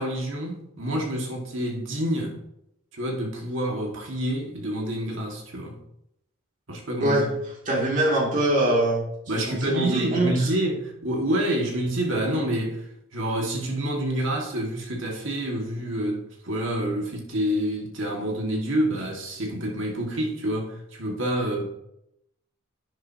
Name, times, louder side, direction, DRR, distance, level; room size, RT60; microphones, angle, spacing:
voice 1, 0.0-2.4 2.9-5.8 6.7-7.2 9.3-12.8 13.1-21.7, right 1 dB, 60° right, 2.1 m, -27 dB
voice 2, 7.7-9.0 9.3-10.5, right 1 dB, 35° right, 2.7 m, -23 dB
11.0 x 9.2 x 2.9 m
head